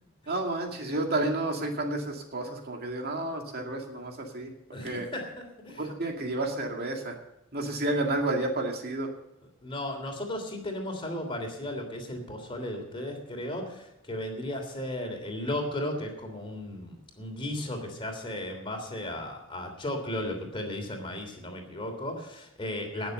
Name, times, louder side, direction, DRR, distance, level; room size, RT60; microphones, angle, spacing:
voice 1, 0.3-4.5 4.8-5.1 5.8-7.2 7.5-9.1, right 2 dB, 50° right, 2 dB, 2.2 m, -31 dB
voice 2, 4.7-5.9 9.6-23.1, left 1 dB, 25° left, 4 dB, 3.1 m, -35 dB
18.5 x 7.1 x 6.6 m, 0.85 s
head